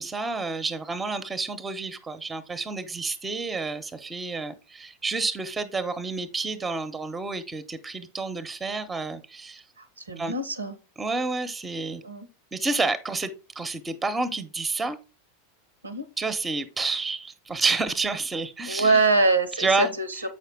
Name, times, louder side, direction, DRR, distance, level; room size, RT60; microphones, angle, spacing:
voice 1, 0.0-9.6 10.2-10.3 11.0-12.0 12.5-15.0 16.2-19.0 19.6-19.9, right 3 dB, 15° right, 12 dB, 0.9 m, -29 dB
voice 2, 9.8-10.7 12.0-12.3 15.8-16.1 18.7-20.2, right 3 dB, 80° right, 12 dB, 0.8 m, -24 dB
7.9 x 5.7 x 3.5 m, 0.30 s
figure-of-eight pair, 85°, 0 cm